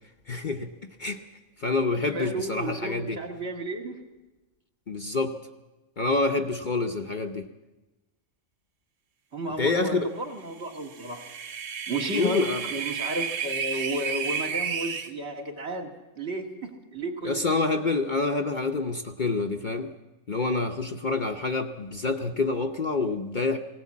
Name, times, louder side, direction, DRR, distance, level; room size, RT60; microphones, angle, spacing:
voice 1, 0.3-1.2 1.6-3.2 4.9-5.4 6.0-7.5 9.6-10.1 12.1-12.6 17.2-19.9 20.3-23.6, left 3 dB, 45° left, 5 dB, 0.8 m, -27 dB
voice 2, 2.1-4.0 9.3-11.2 11.9-17.6, right 1 dB, 55° right, 2 dB, 2.2 m, -33 dB
sound 1, 10.8-15.1, right 7 dB, 75° right, 1.3 m, -32 dB
18.5 x 17.5 x 8.4 m, 1.1 s
omnidirectional pair, 1.3 m